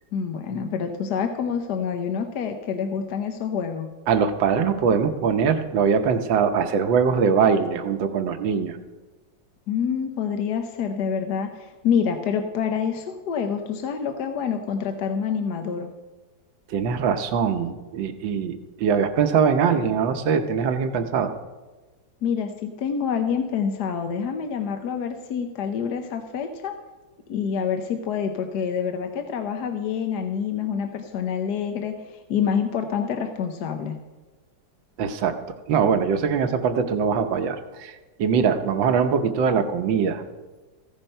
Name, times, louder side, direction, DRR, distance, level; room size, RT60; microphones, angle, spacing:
voice 1, 0.1-3.9 9.7-15.9 22.2-26.8 27.3-34.0, left 7 dB, 65° left, 5 dB, 1.3 m, -27 dB
voice 2, 4.1-8.8 16.7-21.3 35.0-35.3 35.7-40.2, right 6 dB, 90° right, 8 dB, 1.6 m, -22 dB
15.0 x 8.9 x 5.5 m, 1.2 s
omnidirectional pair, 2.0 m